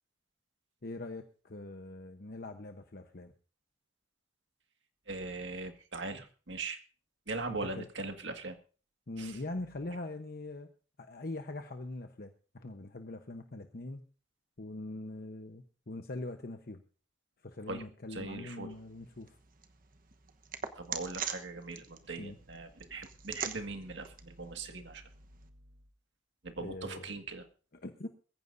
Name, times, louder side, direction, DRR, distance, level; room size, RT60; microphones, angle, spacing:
voice 1, 0.8-3.3 7.5-7.9 9.1-10.7 11.0-14.0 14.6-16.8 17.4-19.4 22.2-22.4 26.6-27.2 27.7-28.1, left 2 dB, 55° left, 6 dB, 1.0 m, -42 dB
voice 2, 5.1-6.8 7.3-8.6 9.2-9.4 17.7-17.8 18.1-18.7 20.8-25.1 26.4-27.4, right 3 dB, 75° right, 6 dB, 1.9 m, -40 dB
sound 1, 18.7-25.5, right 7 dB, 50° right, 1.1 m, -44 dB
22.0 x 15.0 x 2.7 m, 0.38 s
head